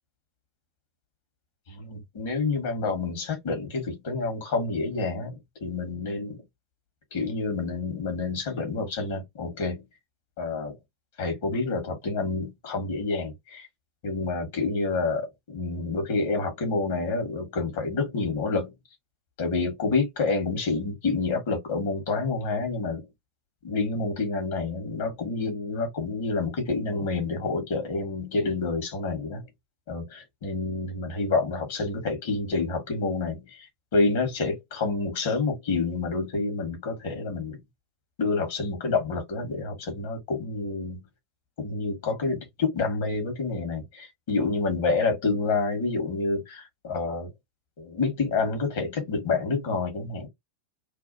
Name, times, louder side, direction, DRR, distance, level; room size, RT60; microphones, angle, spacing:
voice 1, 1.7-6.4 7.1-9.9 10.4-10.7 11.2-13.7 14.0-18.7 19.4-23.0 23.6-29.4 29.9-37.6 38.2-41.0 41.6-47.3 47.8-50.3, left 3 dB, 55° left, 1.3 m, -28 dB
2.7 x 2.3 x 2.5 m
figure-of-eight pair, 90°, 0 cm